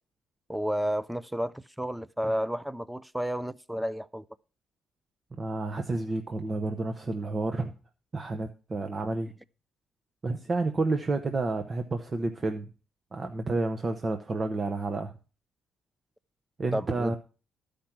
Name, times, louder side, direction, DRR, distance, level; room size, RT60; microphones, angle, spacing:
voice 1, 0.5-4.2 16.7-17.1, equal, 5° right, 0.5 m, -31 dB
voice 2, 5.4-7.7 8.1-9.3 10.2-12.7 13.1-15.1 16.6-17.2, right 3 dB, 35° right, 0.9 m, -30 dB
12.0 x 5.1 x 5.9 m
cardioid pair, 90°, 0 cm